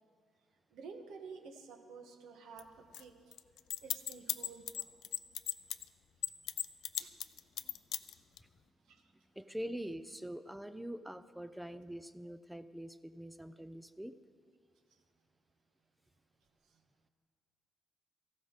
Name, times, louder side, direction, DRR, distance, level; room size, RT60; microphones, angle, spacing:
voice 1, 0.7-3.2 3.8-4.8 7.0-7.1 8.9-9.0, right 5 dB, 80° right, 5 dB, 1.5 m, -51 dB
sound 1, 2.6-2.7 2.9-3.0 3.3-5.8 6.2-8.4, left 11 dB, 65° left, 0.4 m, -36 dB
voice 2, 9.4-14.1, equal, 5° right, 12 dB, 0.3 m, -44 dB
17.5 x 15.0 x 4.0 m, 2.1 s
cardioid pair, 180°, 0 cm